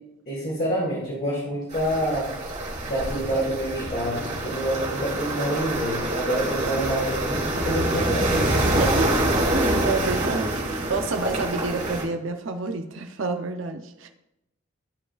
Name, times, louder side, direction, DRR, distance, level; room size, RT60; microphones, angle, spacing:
voice 1, 0.3-2.3 2.9-8.7, right 1 dB, 50° left, -8 dB, 2.3 m, -27 dB
sound 1, 1.7-12.0, right 1 dB, 35° right, 2.5 m, -26 dB
voice 2, 8.7-9.2 9.5-14.1, right 3 dB, 75° right, 6 dB, 0.6 m, -29 dB
13.0 x 4.9 x 2.4 m, 0.87 s
head